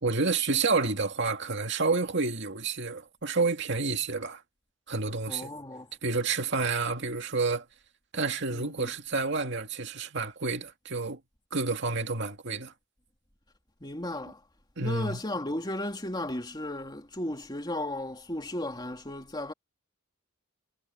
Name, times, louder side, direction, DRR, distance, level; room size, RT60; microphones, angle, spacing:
voice 1, 0.0-4.4 4.9-5.5 6.0-7.6 8.1-11.2 11.5-12.7 14.8-15.2, right 4 dB, 60° right, 2.3 m, -29 dB
voice 2, 5.3-5.9 8.5-8.9 13.8-14.4 14.8-19.5, left 1 dB, 20° left, 2.9 m, -35 dB
head